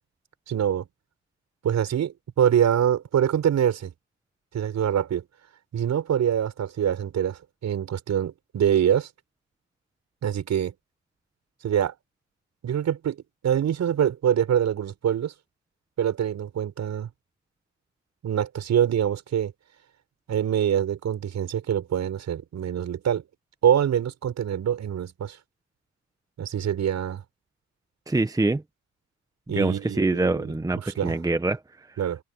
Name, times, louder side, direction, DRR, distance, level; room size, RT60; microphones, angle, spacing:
voice 1, 0.5-0.9 1.6-3.9 4.5-5.2 5.7-9.1 10.2-10.7 11.6-11.9 12.6-15.3 16.0-17.1 18.2-19.5 20.3-23.2 23.6-25.4 26.4-27.2 29.5-30.5 30.8-31.2 32.0-32.2, right 9 dB, 65° right, 6.2 m, -25 dB
voice 2, 28.1-28.6 29.6-32.0, right 2 dB, 10° right, 1.2 m, -25 dB
open air
cardioid pair, 90°, 30 cm